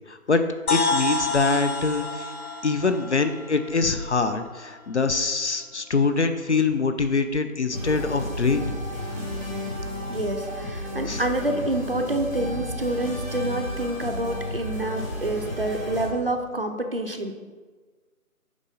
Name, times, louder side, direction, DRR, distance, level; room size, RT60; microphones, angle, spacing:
voice 1, 0.1-0.4 0.7-2.3 2.6-8.7 11.1-11.2, left 4 dB, 55° left, 9 dB, 0.5 m, -24 dB
sound 1, 0.7-4.4, left 2 dB, 80° left, 1.2 m, -29 dB
sound 2, 7.7-16.1, left 1 dB, 15° left, 0.9 m, -32 dB
voice 2, 10.1-17.3, right 1 dB, 40° right, 5 dB, 0.5 m, -27 dB
7.1 x 4.9 x 3.9 m, 1.4 s
figure-of-eight pair, 160°, 43 cm